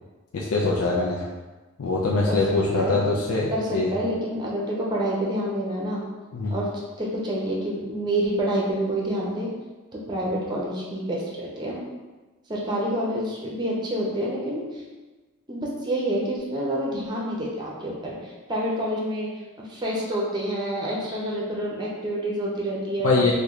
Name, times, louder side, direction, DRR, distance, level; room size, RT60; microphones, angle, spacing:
voice 1, 0.3-1.3 1.8-3.9 6.3-6.6 23.0-23.3, left 3 dB, 90° left, -3 dB, 0.4 m, -23 dB
voice 2, 3.5-6.0 6.5-9.5 9.9-11.8 12.5-14.8 15.5-19.3 19.6-23.2, right 1 dB, 20° right, -3 dB, 0.5 m, -28 dB
3.0 x 2.2 x 3.6 m, 1.2 s
head